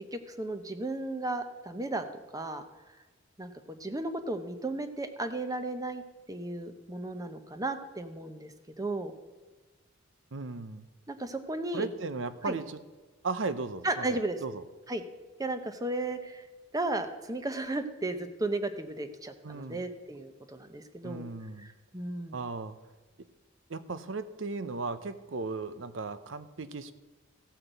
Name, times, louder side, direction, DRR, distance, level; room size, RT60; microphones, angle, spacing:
voice 1, 0.1-2.6 3.4-6.0 6.3-9.1 11.1-11.9 12.4-12.6 13.8-14.4 14.9-15.0 15.4-16.5 16.7-21.3 21.6-22.4, right 2 dB, 20° right, 8 dB, 0.9 m, -34 dB
voice 2, 10.3-10.9 11.7-12.8 13.2-14.6 19.4-19.8 21.0-21.7 22.3-22.8 23.2-23.3 23.7-26.9, right 3 dB, 70° right, 13 dB, 0.7 m, -36 dB
15.0 x 5.8 x 8.1 m, 1.3 s
head